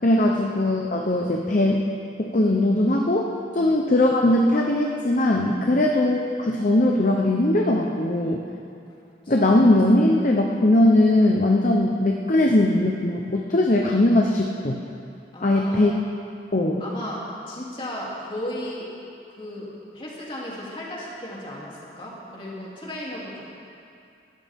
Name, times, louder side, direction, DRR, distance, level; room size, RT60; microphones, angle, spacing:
voice 1, 0.0-1.9 2.2-3.3 3.5-8.4 9.3-14.8 15.4-15.9 16.5-16.8, left 1 dB, 45° left, 0 dB, 0.9 m, -20 dB
voice 2, 8.9-9.6 15.3-15.9 16.8-18.9 19.3-23.4, left 1 dB, 30° left, -5 dB, 3.0 m, -35 dB
21.0 x 14.0 x 3.7 m, 2.5 s
head